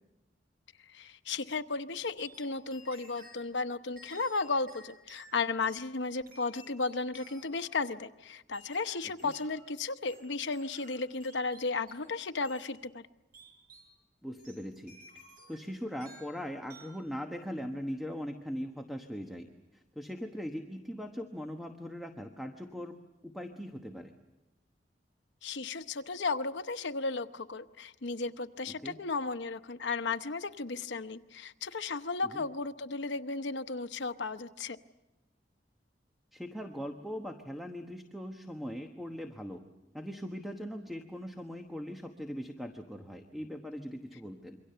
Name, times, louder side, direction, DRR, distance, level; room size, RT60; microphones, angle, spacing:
voice 1, 0.9-13.0 25.4-34.8, left 4 dB, 85° left, 9 dB, 0.9 m, -34 dB
sound 1, 2.2-3.4 4.0-5.8 6.3-7.7 8.5-9.6 10.1-12.2 12.4-12.7 13.3-13.9 14.4-15.7 16.0-16.4 16.7-17.0, right 1 dB, 55° right, 7.9 m, -55 dB
voice 2, 14.2-15.0 15.5-19.5 19.7-23.0 23.2-24.1 28.7-29.0 32.3-32.4 36.3-39.6 39.9-44.6, equal, ahead, 4 dB, 1.1 m, -40 dB
27.5 x 24.0 x 6.8 m, 1.0 s
head